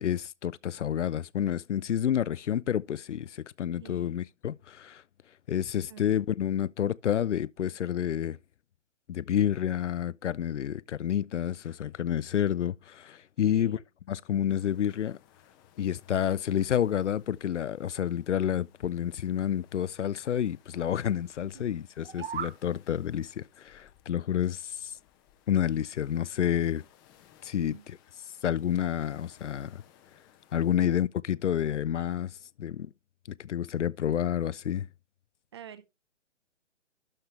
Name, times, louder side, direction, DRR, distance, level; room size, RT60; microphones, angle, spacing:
voice 1, 0.0-5.0 5.5-8.4 9.1-13.8 14.1-15.2 15.8-24.9 25.5-26.8 27.4-27.8 28.4-29.8 30.5-32.9 33.3-34.9, left 9 dB, 75° left, 0.5 m, -29 dB
voice 2, 3.8-4.2 5.9-6.2 13.4-13.8 21.5-21.7 22.2-22.3 27.6-27.9 30.6-31.0 35.5-35.9, right 9 dB, 20° right, 0.6 m, -49 dB
sound 1, 14.5-31.0, left 10 dB, 20° left, 0.9 m, -63 dB
sound 2, 21.9-22.6, right 8 dB, 55° right, 0.8 m, -37 dB
12.0 x 5.6 x 3.3 m
figure-of-eight pair, 140°, 37 cm